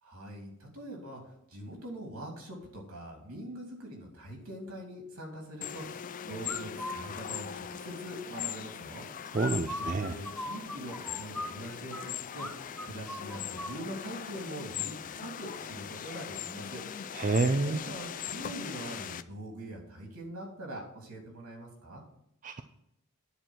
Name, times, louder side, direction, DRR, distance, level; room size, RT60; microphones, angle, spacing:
voice 1, 0.0-9.0 9.8-12.5 12.8-16.8 17.6-22.0, right 1 dB, 75° right, 0 dB, 3.2 m, -43 dB
sound 1, 5.6-19.2, left 9 dB, 35° left, 0.4 m, -40 dB
sound 2, 6.4-7.0 9.3-12.0 12.4-12.5 12.8-13.8, left 1 dB, 5° left, 0.8 m, -39 dB
voice 2, 9.3-10.1 17.1-17.8 22.4-22.6, right 3 dB, 35° right, 7 dB, 0.5 m, -28 dB
9.9 x 4.8 x 7.3 m, 0.78 s
head